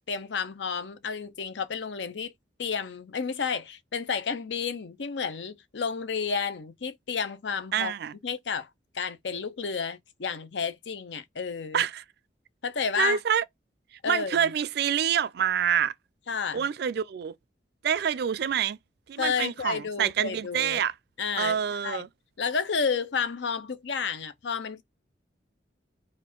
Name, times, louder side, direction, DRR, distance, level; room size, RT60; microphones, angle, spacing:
voice 1, 0.1-2.3 2.6-7.9 8.2-8.7 8.9-11.8 12.6-13.2 14.0-14.5 16.3-16.7 19.2-20.8 21.2-21.6 21.8-22.0 22.4-24.8, left 6 dB, 80° left, 0.6 m, -31 dB
voice 2, 7.7-8.1 11.7-12.0 13.0-13.4 14.1-15.9 16.5-17.3 17.8-18.8 19.1-20.9 21.4-22.1, right 8 dB, 60° right, 0.4 m, -26 dB
4.2 x 2.5 x 4.4 m
head